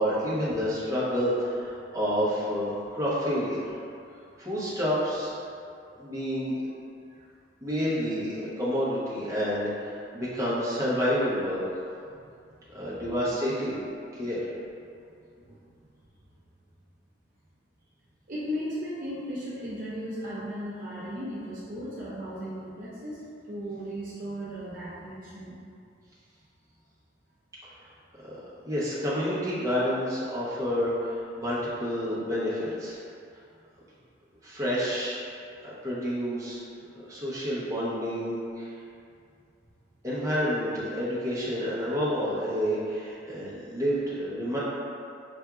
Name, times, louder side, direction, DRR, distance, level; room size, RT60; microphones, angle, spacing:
voice 1, 0.0-3.7 4.4-5.3 6.0-6.6 7.6-11.6 12.7-13.8 14.2-14.5 28.2-28.3 28.6-33.0 34.4-35.2 35.6-36.6 37.1-38.7 40.0-44.6, equal, 15° right, -9 dB, 0.8 m, -29 dB
voice 2, 18.3-25.6, equal, 45° right, -9 dB, 0.5 m, -36 dB
5.7 x 2.5 x 2.4 m, 2.4 s
head